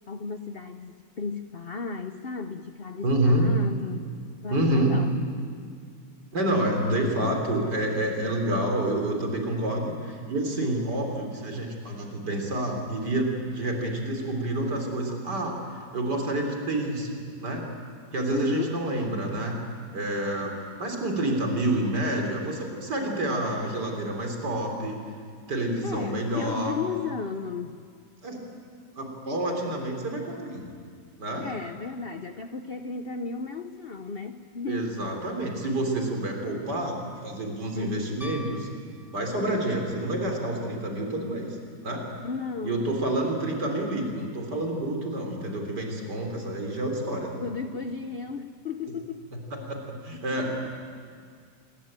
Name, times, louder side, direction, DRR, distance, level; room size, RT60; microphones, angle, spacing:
voice 1, 0.1-4.1 4.4-5.2 18.3-18.8 25.8-27.8 31.4-34.9 37.7-38.2 42.2-43.3 47.4-49.7 50.1-50.6, left 5 dB, 50° left, 8 dB, 0.7 m, -35 dB
voice 2, 3.0-3.5 4.5-5.0 6.3-17.1 17.4-17.6 18.1-19.5 19.9-25.0 25.5-26.8 28.2-28.4 29.0-30.7 31.2-31.5 34.7-38.7 39.1-41.6 41.8-42.0 42.6-47.4 49.5-50.7, right 1 dB, 65° right, 2 dB, 4.4 m, -28 dB
Piano, 38.2-39.8 42.1-42.2, left 1 dB, ahead, 0.5 m, -44 dB
27.5 x 21.5 x 8.9 m, 2.1 s
omnidirectional pair, 2.0 m